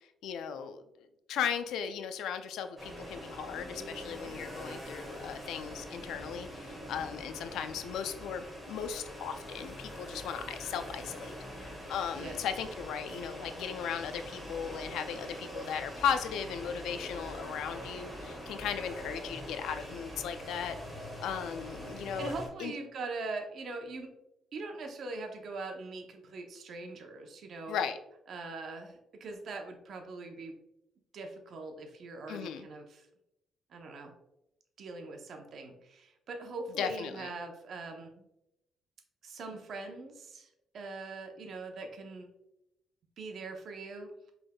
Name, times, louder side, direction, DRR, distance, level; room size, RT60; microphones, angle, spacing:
voice 1, 0.2-0.8 1.3-20.8 21.2-22.3 22.6-22.7 27.7-28.0 32.3-32.7 36.8-37.3, left 8 dB, 85° left, 9 dB, 0.4 m, -36 dB
sound 1, 2.8-22.5, equal, 5° right, 1.5 m, -44 dB
voice 2, 22.2-24.1 24.5-27.8 28.3-30.6 31.1-33.1 33.7-34.1 34.8-38.2 39.2-42.3 43.2-44.1, right 3 dB, 60° right, 4 dB, 0.7 m, -42 dB
5.3 x 3.5 x 2.2 m, 0.86 s
cardioid pair, 90°, 0 cm